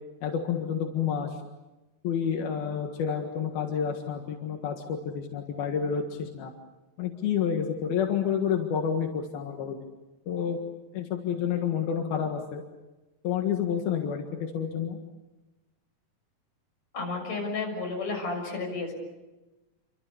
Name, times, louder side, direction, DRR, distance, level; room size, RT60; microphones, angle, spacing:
voice 1, 0.2-1.4 2.0-6.5 7.0-9.8 10.3-10.6 10.9-12.6 13.2-15.0, left 7 dB, 85° left, 3 dB, 3.6 m, -29 dB
voice 2, 16.9-18.9, left 3 dB, 50° left, 1 dB, 7.8 m, -32 dB
28.5 x 25.5 x 7.1 m, 1.1 s
omnidirectional pair, 4.2 m